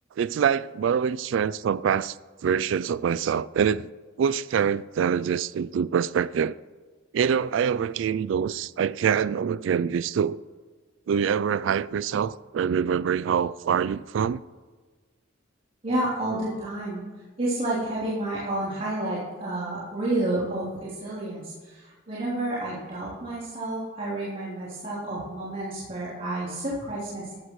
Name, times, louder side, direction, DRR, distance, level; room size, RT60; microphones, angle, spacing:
voice 1, 0.2-2.2 2.4-3.9 4.2-6.5 7.1-10.4 11.1-14.4, right 7 dB, 70° right, 0.3 m, -25 dB
voice 2, 15.8-17.0 17.4-27.4, right 1 dB, 40° right, 3.4 m, -30 dB
14.5 x 13.0 x 3.1 m
head